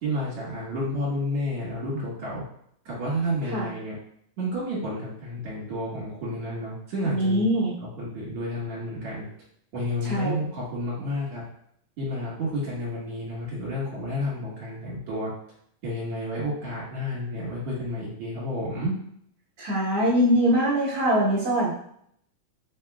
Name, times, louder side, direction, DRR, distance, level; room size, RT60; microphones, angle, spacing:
voice 1, 0.0-2.4 2.9-3.9 4.4-9.2 9.7-11.4 12.0-15.3 15.8-18.9, equal, 50° right, -8 dB, 2.4 m, -31 dB
voice 2, 7.1-7.7 10.0-10.3 19.6-21.7, equal, 65° right, -9 dB, 0.9 m, -23 dB
6.5 x 2.8 x 2.3 m, 0.68 s
omnidirectional pair, 3.8 m